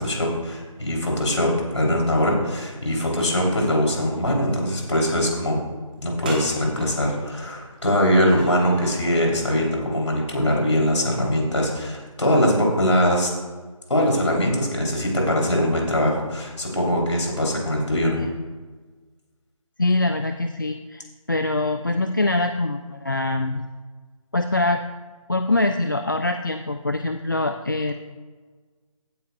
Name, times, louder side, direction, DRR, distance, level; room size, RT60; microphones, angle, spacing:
voice 1, 0.0-5.6 6.0-13.3 13.9-18.2, equal, 55° left, -1 dB, 3.3 m, -22 dB
sound 1, 5.9-6.0 6.2-9.1 10.4-10.7, right 1 dB, 15° right, 1.1 m, -39 dB
voice 2, 19.8-23.6 24.3-24.8 25.3-27.9, left 2 dB, 35° left, 7 dB, 0.4 m, -24 dB
16.0 x 9.1 x 2.3 m, 1.4 s
figure-of-eight pair, 155°, 18 cm